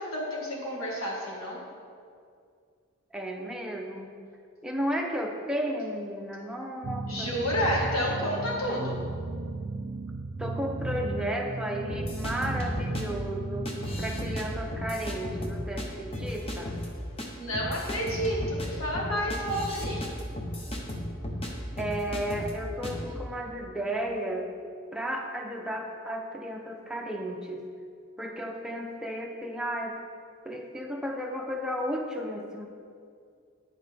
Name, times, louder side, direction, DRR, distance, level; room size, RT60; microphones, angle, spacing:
voice 1, 0.0-1.6 7.1-9.0 17.4-20.0, equal, 80° left, -4 dB, 1.7 m, -30 dB
voice 2, 3.1-4.1 4.6-7.3 8.7-9.2 10.4-13.7 14.0-16.8 21.8-24.5 24.9-27.7 28.2-30.0 30.4-32.7, equal, 5° right, 0 dB, 0.6 m, -33 dB
sound 1, 6.8-14.7, right 3 dB, 45° right, 0.4 m, -35 dB
sound 2, 11.9-13.0 13.7-14.4 14.7-15.9 16.1-16.9 17.2-17.3 17.5-21.5 21.8-22.5 22.8-23.1, left 1 dB, 30° left, 0.8 m, -34 dB
10.5 x 4.8 x 3.4 m, 2.3 s
head